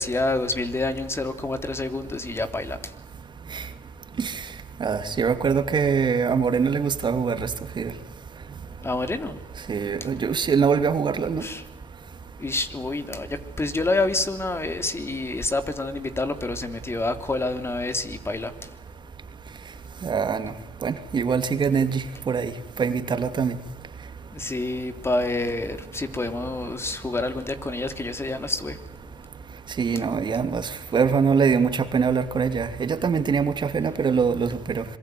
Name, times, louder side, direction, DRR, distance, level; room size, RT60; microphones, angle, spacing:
voice 1, 0.0-2.9 8.8-9.4 10.0-10.1 11.4-11.6 12.4-18.5 24.3-28.8, left 2 dB, 25° left, 3.3 m, -28 dB
voice 2, 4.8-7.5 7.8-7.9 9.7-11.4 20.0-20.5 20.8-23.6 29.8-34.8, right 6 dB, 45° right, 2.7 m, -23 dB
25.5 x 23.5 x 9.4 m
supercardioid pair, 70°, 11 cm